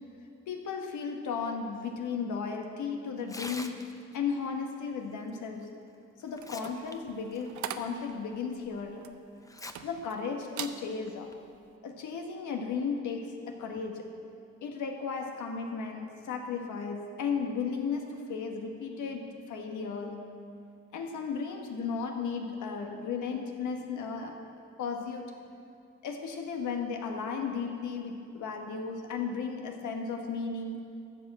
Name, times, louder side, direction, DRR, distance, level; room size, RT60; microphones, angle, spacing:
voice 1, 0.5-3.9 4.1-5.7 6.2-9.0 9.8-11.3 11.8-14.1 14.6-20.3 20.9-24.4 24.8-25.3 26.0-30.8, left 5 dB, 80° left, 3 dB, 1.4 m, -35 dB
Tearing, 3.2-4.2 5.6-5.7 6.2-6.9 7.3-7.4 8.1-8.2 9.4-9.7 10.1-10.2 11.1-11.3, left 2 dB, 10° left, 0.7 m, -43 dB
sound 1, 6.3-10.2 10.5-10.8 11.3-11.5, right 10 dB, 70° right, 0.7 m, -42 dB
14.0 x 5.5 x 7.4 m, 2.6 s
cardioid pair, 90°, 30 cm